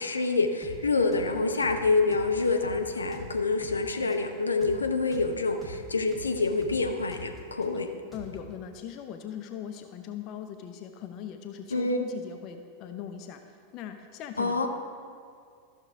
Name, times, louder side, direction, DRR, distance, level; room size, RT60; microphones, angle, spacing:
voice 1, 0.0-7.9 11.7-12.1 14.4-14.7, left 3 dB, 75° left, 4 dB, 0.7 m, -27 dB
sound 1, 0.6-0.8 1.1-1.3 1.6-1.8 2.1-3.8 4.1-4.2 4.6-4.8 5.1-5.3 5.6-5.8 6.1-7.7 8.1-8.5, left 1 dB, 5° left, 1.5 m, -44 dB
voice 2, 8.1-13.4 13.7-14.7, left 9 dB, 40° left, 6 dB, 0.5 m, -40 dB
13.5 x 6.5 x 3.6 m, 2.2 s
figure-of-eight pair, 90°, 0 cm